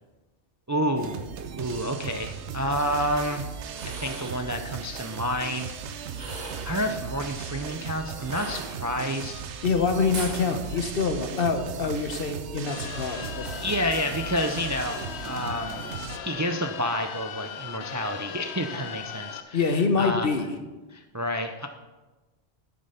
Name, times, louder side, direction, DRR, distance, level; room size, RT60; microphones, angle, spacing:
voice 1, 0.7-1.2 1.6-3.4 4.0-5.8 6.6-9.5 13.6-15.8 16.2-20.3 20.9-21.7, equal, 25° right, 5 dB, 0.4 m, -29 dB
sound 1, 1.0-16.2, right 6 dB, 85° right, 1.0 m, -37 dB
sound 2, 3.7-4.4 6.1-6.8 8.2-9.1 10.1-10.4, right 2 dB, 40° right, 1.4 m, -38 dB
voice 2, 9.6-13.5 19.5-20.5, left 4 dB, 60° left, 6 dB, 1.1 m, -25 dB
sound 3, 12.7-19.4, left 8 dB, 75° left, 0.9 m, -38 dB
9.8 x 7.9 x 5.6 m, 1.2 s
omnidirectional pair, 1.1 m